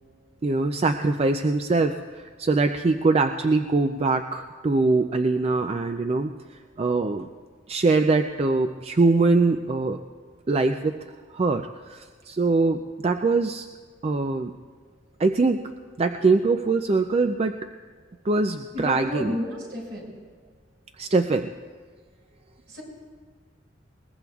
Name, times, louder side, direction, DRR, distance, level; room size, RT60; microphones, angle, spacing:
voice 1, 0.4-6.3 6.8-7.3 7.7-10.0 10.5-10.9 11.3-13.7 14.0-14.5 15.2-15.7 16.0-17.6 18.2-19.4 21.0-21.5, right 3 dB, 35° right, 6 dB, 0.4 m, -23 dB
voice 2, 18.7-20.2 22.7-22.8, left 1 dB, 70° right, -3 dB, 5.5 m, -31 dB
21.5 x 20.0 x 2.4 m, 1.5 s
head